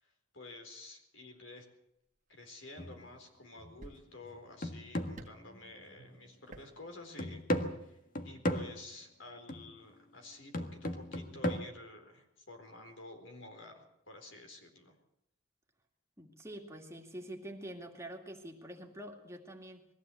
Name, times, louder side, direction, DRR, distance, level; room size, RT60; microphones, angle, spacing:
voice 1, 0.0-1.7 2.3-7.4 7.8-8.0 8.2-13.8 14.1-15.0, left 2 dB, 70° left, 5 dB, 4.2 m, -51 dB
sound 1, 2.2-2.3 3.3-3.4 3.8-4.4 5.2-5.5 6.5-6.8 7.1-7.2, right 2 dB, 40° right, 1.7 m, -51 dB
sound 2, 2.8-3.1 3.6-3.8 4.2-6.2 6.6-6.7 7.2-8.9 9.5-9.7 10.5-11.6, equal, 45° left, 1.7 m, -36 dB
voice 2, 16.2-19.9, right 1 dB, 15° right, 2 dB, 2.3 m, -46 dB
21.0 x 15.0 x 8.5 m, 0.79 s
head